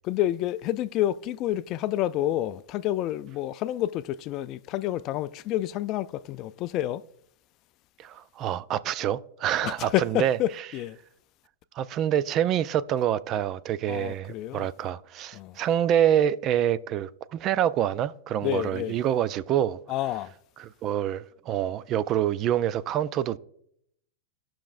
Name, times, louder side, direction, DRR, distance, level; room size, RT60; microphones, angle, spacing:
voice 1, 0.0-7.0 9.6-11.0 13.9-14.7 15.3-15.6 18.4-19.0 19.9-20.3, left 13 dB, 40° left, 0.3 m, -29 dB
voice 2, 8.0-10.4 11.8-19.8 20.6-23.4, right 10 dB, 35° right, 0.3 m, -26 dB
14.5 x 5.9 x 2.5 m
hypercardioid pair, 120°, 0 cm